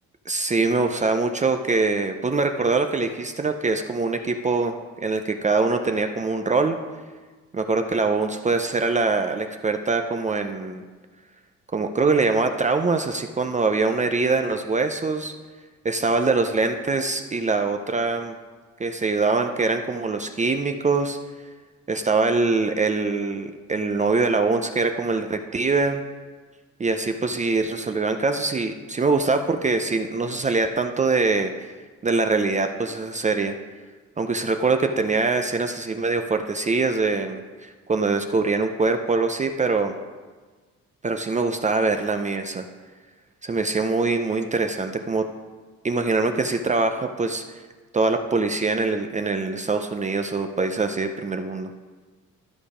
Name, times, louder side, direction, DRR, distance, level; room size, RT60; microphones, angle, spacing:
voice 1, 0.3-4.8 5.0-6.8 7.5-10.8 11.7-15.3 15.8-18.4 18.8-21.2 21.9-26.0 26.8-31.7 32.0-33.6 34.2-40.0 41.0-42.7 43.4-45.3 45.8-47.4 47.9-51.7, right 3 dB, 25° right, 6 dB, 0.5 m, -23 dB
12.5 x 5.2 x 4.9 m, 1.4 s
cardioid pair, 90°, 30 cm